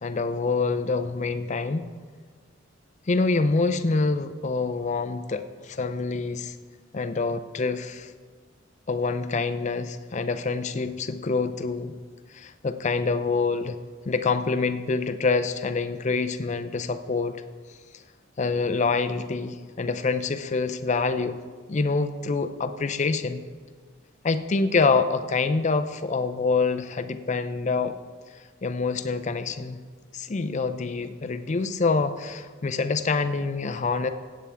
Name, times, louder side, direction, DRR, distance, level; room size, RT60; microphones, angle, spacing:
voice 1, 0.0-1.9 3.1-6.5 6.9-8.1 8.9-11.9 12.3-13.8 14.1-17.4 18.4-21.4 21.7-23.4 24.2-27.9 28.6-29.8 30.1-34.1, left 4 dB, 35° left, 10 dB, 0.5 m, -26 dB
15.5 x 8.7 x 3.5 m, 1.5 s
head